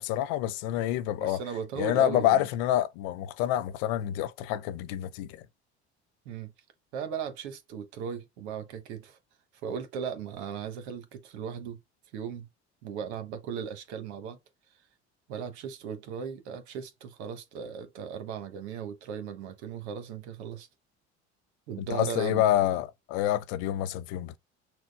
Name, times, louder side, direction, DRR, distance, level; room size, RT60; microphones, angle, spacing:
voice 1, 0.0-1.4 1.8-5.4 21.8-24.4, left 12 dB, 70° left, 0.6 m, -27 dB
voice 2, 1.2-2.5 6.2-6.5 6.9-9.2 9.6-11.8 12.1-12.5 12.8-14.4 15.3-20.7 21.7-22.6, right 7 dB, 75° right, 1.1 m, -37 dB
6.1 x 2.2 x 3.4 m
hypercardioid pair, 65°, 33 cm